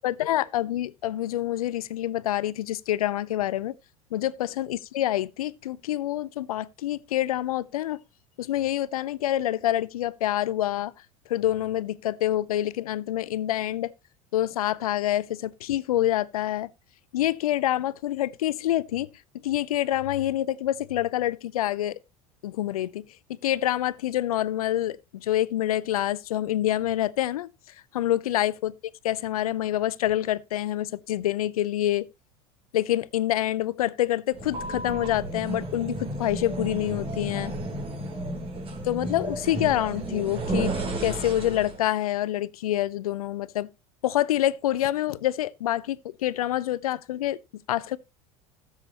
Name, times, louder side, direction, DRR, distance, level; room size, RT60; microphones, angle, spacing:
voice 1, 0.0-3.7 4.1-8.0 8.4-10.9 11.3-13.9 14.3-16.7 17.1-19.1 19.4-22.0 22.4-23.0 23.3-27.5 27.9-28.7 29.0-32.1 32.7-37.5 38.8-40.7 41.0-43.7 44.0-47.4 47.7-48.0, left 13 dB, 75° left, 0.5 m, -27 dB
sound 1, 34.3-41.8, right 2 dB, 30° right, 3.3 m, -32 dB
14.5 x 7.3 x 2.9 m
hypercardioid pair, 80°, 19 cm